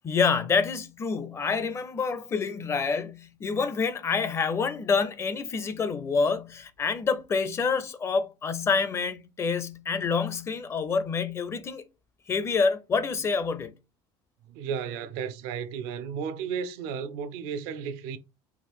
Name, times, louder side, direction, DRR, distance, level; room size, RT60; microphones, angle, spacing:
voice 1, 0.0-11.8 12.3-13.7, left 5 dB, 30° left, 0.5 m, -27 dB
voice 2, 14.5-18.2, right 7 dB, 85° right, 0.6 m, -33 dB
4.6 x 2.4 x 3.5 m
cardioid pair, 130°, 10 cm